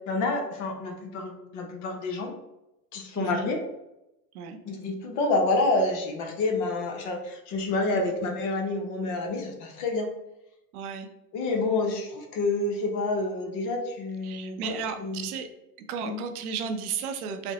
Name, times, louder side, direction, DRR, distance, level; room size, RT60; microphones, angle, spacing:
voice 1, 0.1-2.3 2.9-3.6 4.6-10.1 11.3-15.3 16.0-16.2, left 2 dB, 40° left, 2 dB, 0.8 m, -28 dB
voice 2, 3.2-3.5 4.3-4.6 7.9-8.0 10.7-11.1 14.2-15.5 15.9-17.5, right 6 dB, 70° right, 7 dB, 0.8 m, -34 dB
4.9 x 2.1 x 2.9 m, 0.90 s
hypercardioid pair, 115°, 46 cm